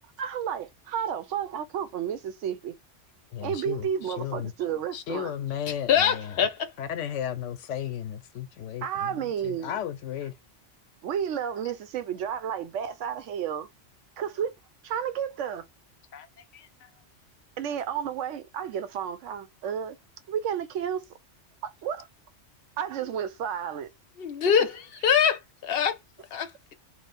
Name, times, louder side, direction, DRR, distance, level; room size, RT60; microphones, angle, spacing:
voice 1, 0.2-2.7 3.4-5.3 8.8-9.8 11.0-13.7 14.2-14.5 14.8-15.6 17.6-20.0 20.3-21.0 21.6-22.0 22.8-23.9, right 8 dB, 85° right, 1.0 m, -31 dB
voice 2, 3.3-4.5 4.9-6.4 6.8-10.3 16.1-16.3 16.5-16.9, left 10 dB, 90° left, 0.9 m, -35 dB
voice 3, 5.9-6.7 24.2-26.0 26.3-26.7, left 8 dB, 60° left, 0.7 m, -24 dB
2.9 x 2.0 x 4.0 m
omnidirectional pair, 1.2 m